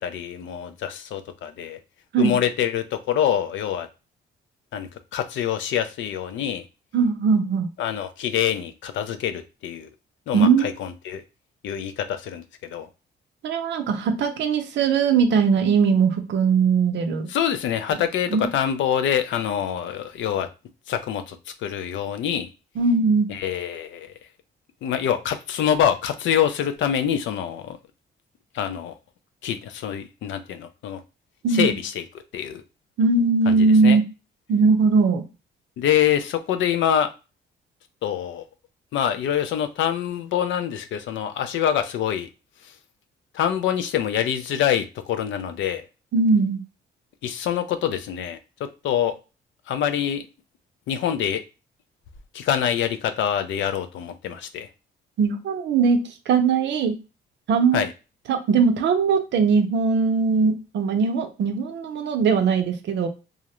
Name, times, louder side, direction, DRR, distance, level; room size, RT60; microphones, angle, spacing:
voice 1, 0.0-1.8 2.2-3.9 4.7-6.6 7.8-9.9 10.3-11.2 11.6-12.4 12.7-12.9 17.3-20.5 20.9-21.4 21.6-22.5 23.3-24.1 24.8-27.8 28.5-28.9 29.4-31.0 31.5-32.0 32.3-32.6 33.5-33.6 33.8-34.0 35.8-37.1 38.0-38.4 38.9-42.3 43.3-45.9 47.2-48.4 48.8-49.1 49.7-50.2 50.9-51.4 52.3-54.7 57.7-57.9, left 9 dB, 75° left, 9 dB, 0.4 m, -25 dB
voice 2, 6.9-7.7 10.3-10.7 13.4-17.3 18.3-18.5 22.8-23.3 31.4-31.7 33.0-34.0 34.5-35.2 46.1-46.6 55.2-57.0 57.5-57.8 58.3-63.1, right 5 dB, 65° right, 6 dB, 0.6 m, -20 dB
2.4 x 2.0 x 2.9 m, 0.30 s
cardioid pair, 90°, 20 cm